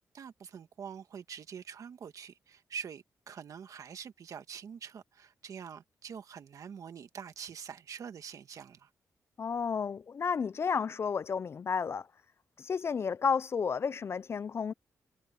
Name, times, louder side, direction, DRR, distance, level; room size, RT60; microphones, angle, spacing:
voice 1, 0.1-8.9, right 7 dB, 70° right, 1.7 m, -45 dB
voice 2, 9.4-12.1 12.6-14.7, left 6 dB, 45° left, 0.4 m, -32 dB
cardioid pair, 95°, 6 cm